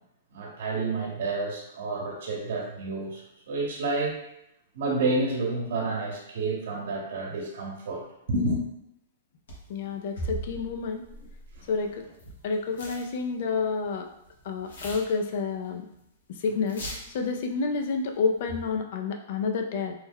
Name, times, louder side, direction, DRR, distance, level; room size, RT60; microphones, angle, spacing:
voice 1, 0.3-4.2 4.7-8.0 8.3-8.6 11.5-11.7, right 2 dB, 65° right, -1 dB, 0.9 m, -29 dB
sound 1, 9.5-9.7 10.2-12.5 12.7-13.1 13.4-13.8 14.3-15.7 15.9-16.0 16.4-16.5 16.7-17.2 18.3-18.8, right 1 dB, 85° left, 1.1 m, -39 dB
voice 2, 9.7-11.1 11.7-12.0 12.4-14.1 14.4-15.9 16.3-19.9, left 4 dB, 50° left, 4 dB, 0.4 m, -29 dB
3.0 x 2.1 x 3.6 m, 0.80 s
hypercardioid pair, 160°, 0 cm